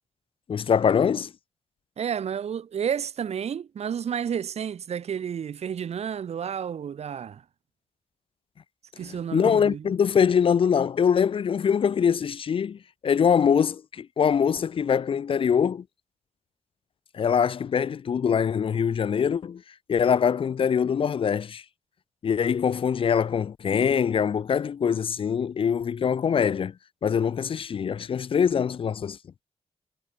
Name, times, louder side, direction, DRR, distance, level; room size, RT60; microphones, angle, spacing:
voice 1, 0.5-1.3 9.0-15.8 17.1-19.6 19.9-21.6 22.2-26.7 27.0-29.2, left 7 dB, 50° left, 0.7 m, -23 dB
voice 2, 2.0-7.4 9.0-9.8, right 8 dB, 70° right, 2.7 m, -31 dB
wide cardioid pair, 135°, 11 cm